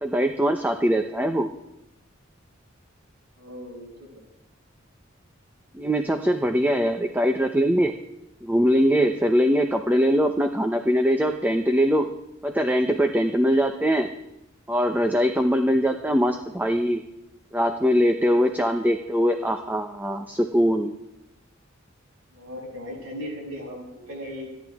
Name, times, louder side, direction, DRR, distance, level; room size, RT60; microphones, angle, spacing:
voice 1, 0.0-1.5 5.7-7.9 8.4-12.1 12.4-14.1 14.7-17.0 17.5-20.9, equal, 10° right, 5 dB, 0.8 m, -22 dB
voice 2, 3.4-4.3 16.2-16.3 22.3-24.5, equal, 80° right, -2 dB, 6.9 m, -38 dB
28.0 x 10.5 x 3.6 m, 0.87 s
head